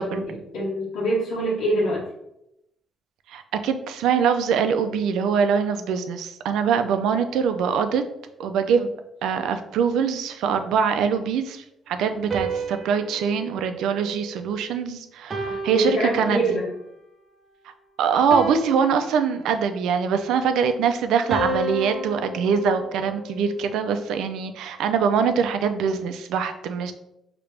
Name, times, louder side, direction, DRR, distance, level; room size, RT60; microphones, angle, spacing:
voice 1, 0.0-2.0 15.4-16.7, right 1 dB, 90° left, -9 dB, 1.5 m, -25 dB
voice 2, 3.3-8.0 8.4-8.9 9.2-16.6 18.0-26.9, right 6 dB, 85° right, 8 dB, 0.4 m, -23 dB
sound 1, 12.3-14.7 15.3-16.8 18.3-19.8 21.3-23.6, right 2 dB, 40° right, 0.7 m, -32 dB
5.0 x 2.9 x 3.3 m, 0.82 s
cardioid pair, 90°, 0 cm